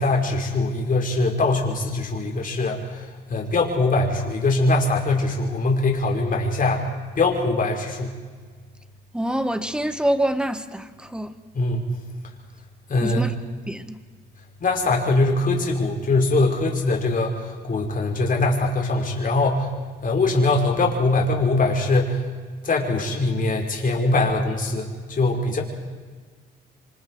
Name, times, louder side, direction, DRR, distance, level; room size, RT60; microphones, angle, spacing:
voice 1, 0.0-6.8 7.1-8.1 11.5-11.8 12.9-13.3 14.6-19.7 20.0-22.2 22.6-25.6, left 2 dB, 45° left, 0 dB, 5.0 m, -22 dB
voice 2, 9.1-11.3 13.0-13.3 13.7-14.0, right 1 dB, 5° right, 10 dB, 1.4 m, -25 dB
27.5 x 25.5 x 4.8 m, 1.5 s
cardioid pair, 90°, 20 cm